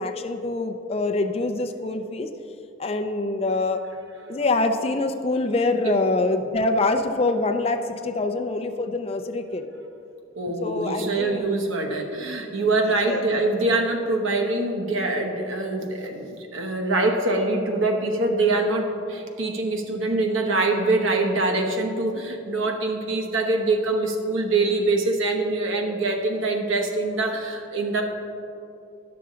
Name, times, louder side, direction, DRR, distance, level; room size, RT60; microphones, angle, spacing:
voice 1, 0.0-2.3 2.8-3.8 4.3-9.6 10.6-11.5 13.0-13.2, left 2 dB, 30° left, 7 dB, 0.4 m, -25 dB
voice 2, 10.4-28.0, right 2 dB, 75° right, 2 dB, 1.0 m, -24 dB
11.0 x 6.8 x 3.8 m, 2.8 s
head